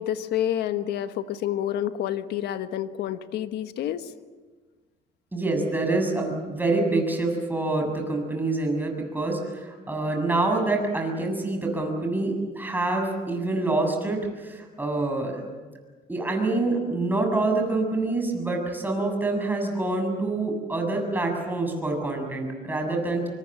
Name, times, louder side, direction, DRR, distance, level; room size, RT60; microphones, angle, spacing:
voice 1, 0.0-4.1, left 11 dB, 80° left, 10 dB, 1.4 m, -28 dB
voice 2, 5.3-15.4 16.1-23.3, right 2 dB, 10° right, 2 dB, 7.1 m, -26 dB
24.5 x 24.0 x 7.5 m, 1.4 s
cardioid pair, 110°, 17 cm